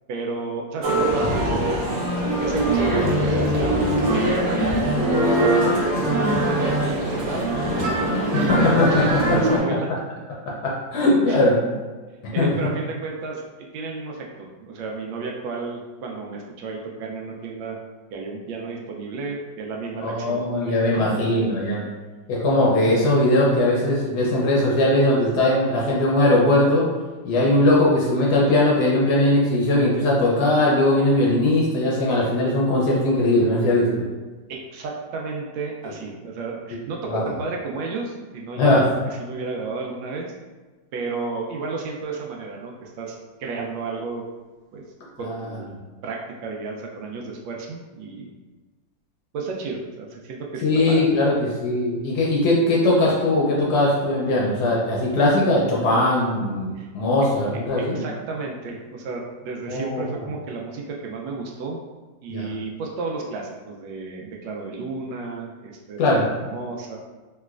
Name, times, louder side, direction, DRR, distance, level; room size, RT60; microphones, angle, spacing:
voice 1, 0.1-1.9 2.2-5.6 5.9-8.7 9.0-9.9 11.3-11.4 12.3-13.4 13.7-17.8 18.1-21.6 34.5-40.3 40.9-44.2 44.7-44.8 45.2-45.7 46.0-48.3 49.3-51.3 56.8-56.9 57.9-61.8 62.2-67.0, right 3 dB, 80° right, 0 dB, 1.2 m, -32 dB
Male speech man speaking, 0.8-9.6, right 1 dB, 60° right, 0.8 m, -22 dB
voice 2, 8.5-9.6 10.5-11.6 12.2-12.5 20.0-21.8 22.3-26.9 27.2-34.0 37.1-37.2 38.6-38.9 45.2-45.4 50.6-58.0 59.7-60.0 62.3-62.5 66.0-66.3, left 1 dB, 70° left, -4 dB, 1.0 m, -20 dB
3.1 x 2.9 x 2.3 m, 1.3 s
omnidirectional pair, 2.1 m